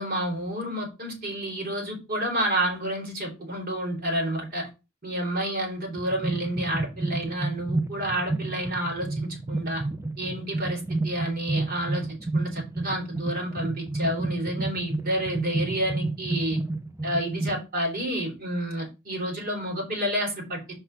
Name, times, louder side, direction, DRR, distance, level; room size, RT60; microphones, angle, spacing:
voice 1, 0.0-4.7 5.0-9.8 10.2-12.1 12.3-16.6 17.0-20.7, right 1 dB, 50° right, 3.7 m, -29 dB
sound 1, 6.0-17.6, right 2 dB, 15° right, 0.6 m, -30 dB
5.5 x 4.2 x 5.8 m
head